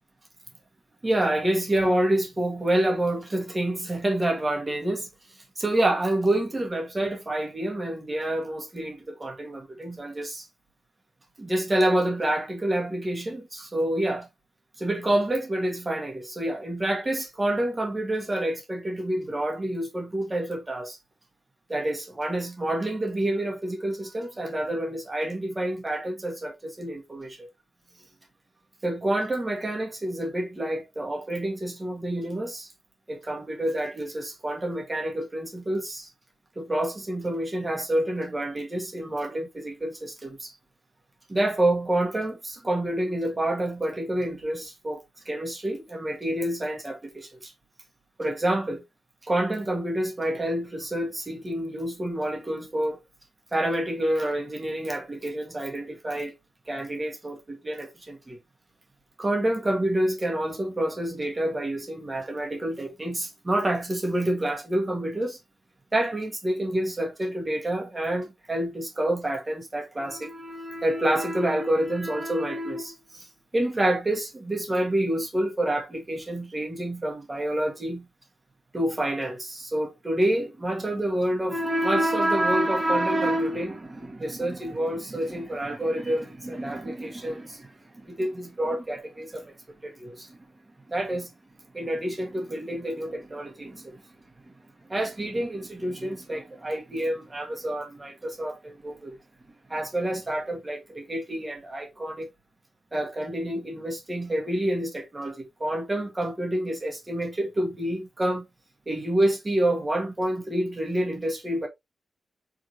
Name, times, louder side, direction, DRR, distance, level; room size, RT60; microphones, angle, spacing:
voice 1, 1.0-5.1 5.6-10.5 11.4-14.3 14.8-21.0 21.7-27.5 28.8-32.7 33.1-36.1 36.5-40.5 41.3-47.5 48.2-48.8 49.2-53.0 53.5-56.3 56.7-58.4 59.2-65.4 65.9-73.3 73.5-78.1 78.7-89.5 89.8-90.4 90.9-91.3 91.7-94.0 94.9-99.2 99.7-102.3 102.9-108.4 108.8-111.7, right 1 dB, 20° right, 1.7 m, -28 dB
4.7 x 3.8 x 2.8 m
wide cardioid pair, 140°, 0 cm